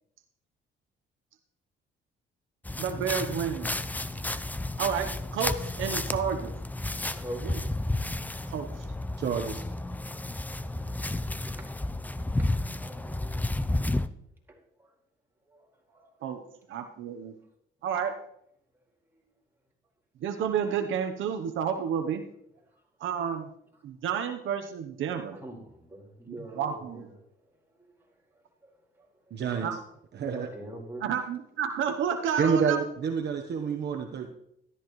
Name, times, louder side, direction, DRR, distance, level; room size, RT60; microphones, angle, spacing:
sound 1, 2.6-14.1, left 2 dB, 10° left, 0.5 m, -32 dB
voice 1, 2.8-3.7 4.8-6.5 7.4-7.6 8.5-8.7 16.2-16.4 16.7-17.3 17.8-18.2 20.2-22.2 23.0-23.5 23.8-25.4 26.3-27.1 29.6-29.8 31.0-32.8, right 8 dB, 80° right, 6 dB, 1.0 m, -30 dB
voice 2, 6.9-7.6 11.6-11.7 12.4-12.5 12.8-13.9 14.5-14.9 15.5-16.1 17.0-17.1 19.1-19.2 22.7-22.8 25.0-27.1 27.8-27.9 28.6-28.7 29.0-29.3 30.4-31.1, right 1 dB, 10° right, -2 dB, 4.6 m, -45 dB
voice 3, 9.2-9.6 29.3-29.7 30.1-30.5 32.4-34.3, right 6 dB, 60° right, 2 dB, 1.1 m, -28 dB
13.5 x 12.5 x 3.1 m, 0.75 s
cardioid pair, 90°, 20 cm